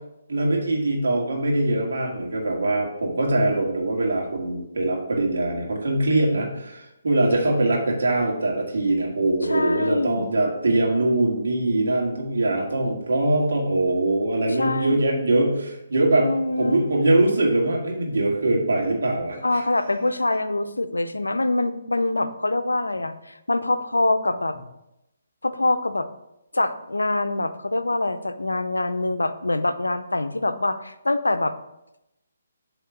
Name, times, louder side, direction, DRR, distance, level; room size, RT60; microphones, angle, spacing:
voice 1, 0.3-16.3 16.6-19.6, right 2 dB, 65° right, 0 dB, 2.0 m, -22 dB
voice 2, 9.4-10.3 14.6-15.0 16.2-16.8 19.4-24.6 25.4-26.1 26.5-31.5, left 2 dB, 85° left, 11 dB, 0.5 m, -24 dB
8.3 x 3.5 x 5.9 m, 0.88 s
figure-of-eight pair, 140°, 0 cm